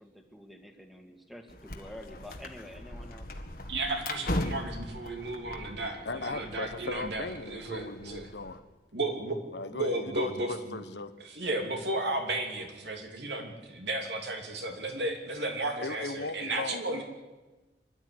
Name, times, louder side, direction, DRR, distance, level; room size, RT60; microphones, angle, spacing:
voice 1, 0.0-3.3, left 1 dB, ahead, 2.0 m, -48 dB
sound 1, 1.5-8.6, left 1 dB, 55° left, 1.9 m, -39 dB
voice 2, 3.7-8.3 8.9-9.4 9.7-10.8 11.2-17.0, right 2 dB, 75° right, 3.0 m, -34 dB
voice 3, 6.0-8.6 9.5-11.1 15.8-17.0, left 3 dB, 75° left, 1.1 m, -38 dB
25.5 x 12.0 x 9.7 m
head